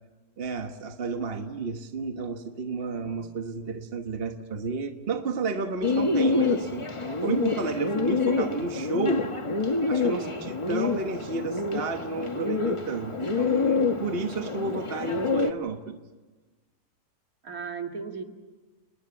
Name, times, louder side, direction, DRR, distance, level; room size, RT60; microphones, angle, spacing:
voice 1, 0.4-6.9 7.2-9.3 9.9-16.0, right 3 dB, 40° right, 6 dB, 1.4 m, -31 dB
Bird, 5.8-15.5, left 3 dB, 20° left, 1.2 m, -27 dB
voice 2, 10.1-10.4 17.4-18.2, right 5 dB, 65° right, 4 dB, 2.5 m, -35 dB
29.5 x 20.0 x 7.2 m, 1.3 s
omnidirectional pair, 1.6 m